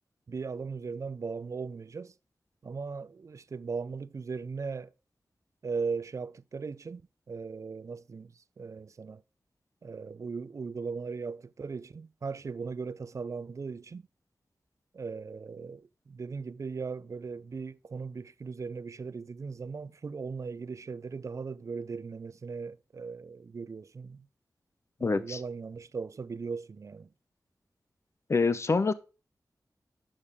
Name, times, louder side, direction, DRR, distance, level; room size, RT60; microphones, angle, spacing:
voice 1, 0.3-2.1 2.6-4.9 5.6-7.0 7.3-9.2 9.8-14.1 14.9-24.3 25.0-27.1, right 5 dB, 50° right, 0.4 m, -38 dB
voice 2, 25.0-25.4 28.3-28.9, left 4 dB, 45° left, 0.7 m, -26 dB
8.7 x 6.5 x 3.5 m
wide cardioid pair, 105°, 7 cm